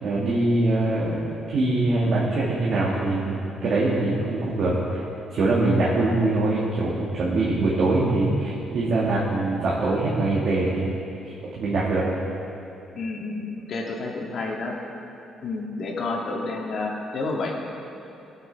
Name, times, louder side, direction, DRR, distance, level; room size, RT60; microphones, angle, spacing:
voice 1, 0.0-5.0 5.3-10.9 11.2-12.1, right 2 dB, 65° right, -6 dB, 2.0 m, -23 dB
voice 2, 13.0-14.8 15.4-17.5, left 3 dB, 60° left, -1 dB, 2.1 m, -30 dB
17.0 x 8.1 x 4.7 m, 2.8 s
cardioid pair, 90°, 0 cm